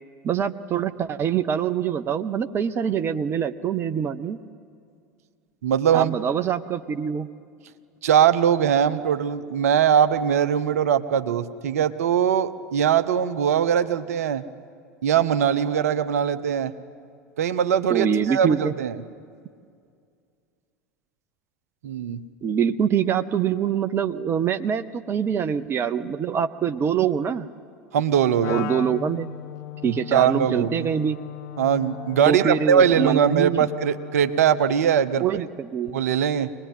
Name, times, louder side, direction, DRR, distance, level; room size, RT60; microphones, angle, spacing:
voice 1, 0.2-4.4 5.9-7.3 17.9-18.7 22.4-27.5 28.5-29.4 29.8-31.2 32.3-33.7 35.2-35.9, right 8 dB, 25° right, 11 dB, 0.7 m, -24 dB
voice 2, 5.6-6.1 8.0-14.4 15.0-16.7 17.4-18.9 21.8-22.2 27.9-28.6 29.8-30.7 31.6-35.2 35.9-36.5, right 8 dB, 65° right, 11 dB, 0.8 m, -21 dB
Wind instrument woodwind instrument, 28.4-34.8, left 13 dB, 50° left, 0.8 m, -37 dB
24.0 x 20.0 x 9.5 m, 2.3 s
figure-of-eight pair, 80°, 9 cm